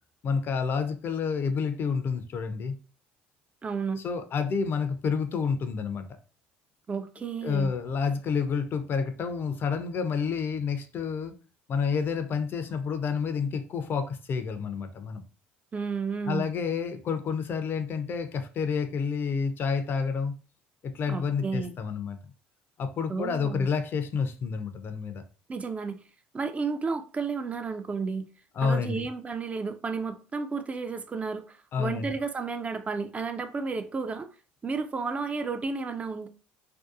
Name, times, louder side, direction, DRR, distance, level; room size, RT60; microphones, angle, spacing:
voice 1, 0.2-2.8 4.0-6.1 7.4-11.4 11.7-15.2 16.3-20.4 20.8-22.2 22.8-25.2 28.6-29.1 31.7-32.1, left 5 dB, 45° left, 0.4 m, -29 dB
voice 2, 3.6-4.1 6.9-7.7 15.7-16.5 21.1-21.7 23.1-23.7 25.5-26.0 26.3-28.3 28.6-34.3 34.6-36.3, right 4 dB, 25° right, 0.3 m, -32 dB
2.6 x 2.2 x 2.4 m
hypercardioid pair, 65°, 5 cm